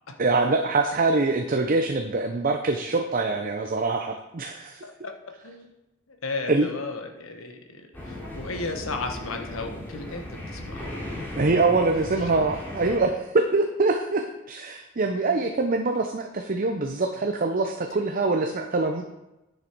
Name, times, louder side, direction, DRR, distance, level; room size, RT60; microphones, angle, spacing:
voice 1, 0.2-4.8 6.5-6.7 11.3-19.0, right 3 dB, 45° right, 4 dB, 0.7 m, -24 dB
voice 2, 4.8-5.1 5.4-5.7 6.1-10.9 11.7-11.8 12.2-12.5, left 3 dB, 85° left, 4 dB, 1.2 m, -35 dB
sound 1, 7.9-13.0, left 1 dB, 10° left, 3.3 m, -36 dB
9.9 x 6.7 x 4.5 m, 0.95 s
head